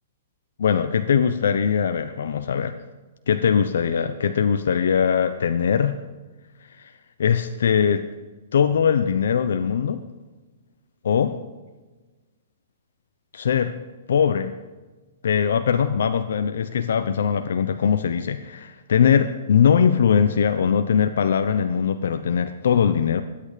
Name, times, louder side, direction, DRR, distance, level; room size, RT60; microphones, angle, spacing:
voice 1, 0.6-2.7 3.3-6.0 6.7-6.9 7.2-8.1 8.5-10.0 11.0-11.3 13.3-13.8 14.1-14.6 15.2-23.2, left 7 dB, 75° left, 9 dB, 0.8 m, -21 dB
22.0 x 8.9 x 5.0 m, 1.2 s
hypercardioid pair, 145°, 0 cm